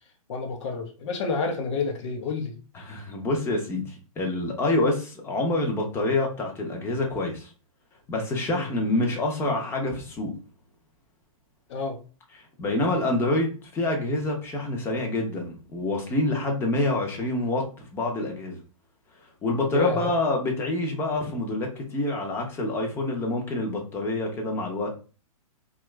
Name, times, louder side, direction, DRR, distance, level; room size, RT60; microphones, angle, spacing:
voice 1, 0.3-2.5 8.5-8.7 11.7-12.0 19.7-20.1, left 4 dB, 55° left, 0.7 m, -29 dB
voice 2, 2.7-7.5 8.1-10.3 12.6-18.6 19.4-24.9, left 2 dB, 15° left, 0.7 m, -27 dB
2.9 x 2.4 x 3.1 m
hypercardioid pair, 145°, 18 cm